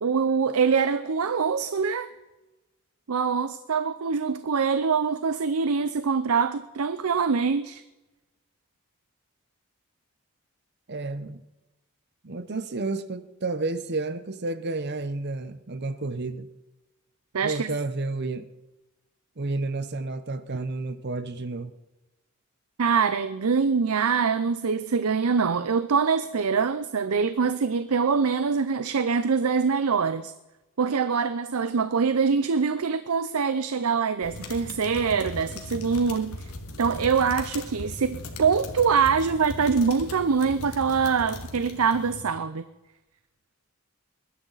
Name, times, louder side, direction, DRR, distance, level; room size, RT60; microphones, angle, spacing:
voice 1, 0.0-2.1 3.1-7.8 17.3-17.7 22.8-30.3 30.8-36.5 36.8-42.6, right 5 dB, 90° right, 0.6 m, -24 dB
voice 2, 10.9-11.4 12.2-16.5 17.4-18.5 19.4-21.7, right 3 dB, 50° right, 0.8 m, -31 dB
sound 1, 34.2-42.2, left 2 dB, 90° left, 2.1 m, -38 dB
21.5 x 12.0 x 4.0 m
head